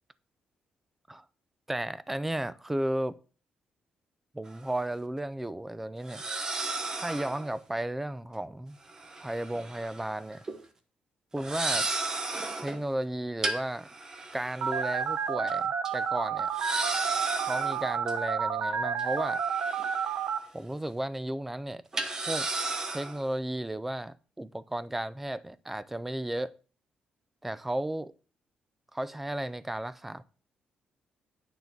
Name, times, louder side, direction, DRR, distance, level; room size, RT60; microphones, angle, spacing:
voice 1, 1.7-3.2 4.3-6.2 7.0-8.8 9.2-10.4 11.3-11.9 12.6-13.9 14.3-16.5 17.4-19.4 20.5-21.8 22.3-22.5 22.9-26.5 27.4-28.1 28.9-30.2, right 1 dB, 5° right, 0.4 m, -34 dB
sound 1, 4.5-4.6 6.1-7.5 8.9-10.1 10.3-10.6 11.4-12.8 13.4-15.1 15.5-15.6 15.8-15.9 16.5-18.1 19.0-20.4 20.7-20.9 21.9-23.2, right 2 dB, 25° right, 0.9 m, -34 dB
Telephone, 14.6-20.4, right 6 dB, 80° right, 0.8 m, -30 dB
9.4 x 4.0 x 5.9 m
cardioid pair, 165°, 3 cm